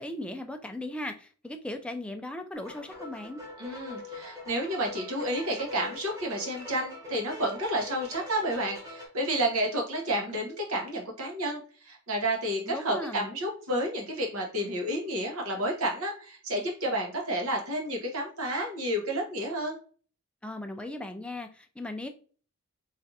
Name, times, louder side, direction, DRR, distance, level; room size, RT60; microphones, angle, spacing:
voice 1, 0.0-3.4 12.6-13.3 20.4-22.1, left 1 dB, 5° left, 6 dB, 0.3 m, -37 dB
sound 1, 2.5-9.1, left 3 dB, 15° right, 1.1 m, -43 dB
voice 2, 3.6-19.8, right 1 dB, 75° right, 1 dB, 0.9 m, -30 dB
4.4 x 2.4 x 2.6 m, 0.40 s
head